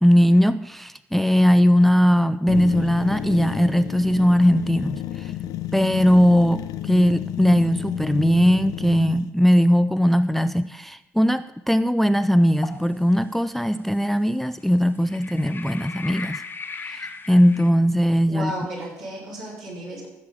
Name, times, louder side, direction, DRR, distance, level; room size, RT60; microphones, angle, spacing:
voice 1, 0.0-5.3 5.7-16.4 16.8-18.5, equal, 5° left, 13 dB, 0.4 m, -19 dB
sound 1, 2.5-9.2, left 11 dB, 55° left, 0.5 m, -31 dB
sound 2, 12.6-12.9 13.6-13.7 15.0-17.7, left 4 dB, 25° left, 1.0 m, -37 dB
voice 2, 18.3-20.1, right 1 dB, 65° right, -5 dB, 4.1 m, -33 dB
15.0 x 7.5 x 4.9 m, 0.95 s
figure-of-eight pair, 50°, 8 cm